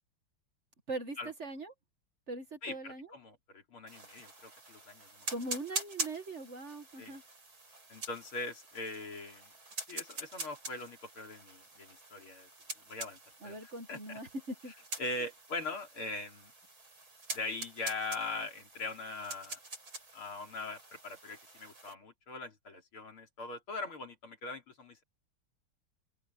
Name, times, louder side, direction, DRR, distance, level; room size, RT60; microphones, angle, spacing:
voice 1, 0.9-1.7 2.3-3.1 5.3-7.2 13.4-14.3 14.6-14.7, right 2 dB, 35° right, 1.8 m, -41 dB
voice 2, 2.6-5.3 7.0-7.2 7.9-9.5 9.9-12.5 12.8-14.2 15.0-16.5 17.3-19.6 20.1-25.0, left 3 dB, 85° left, 4.8 m, -41 dB
sound 1, 3.9-21.9, right 2 dB, 75° right, 7.5 m, -45 dB
open air
omnidirectional pair, 2.3 m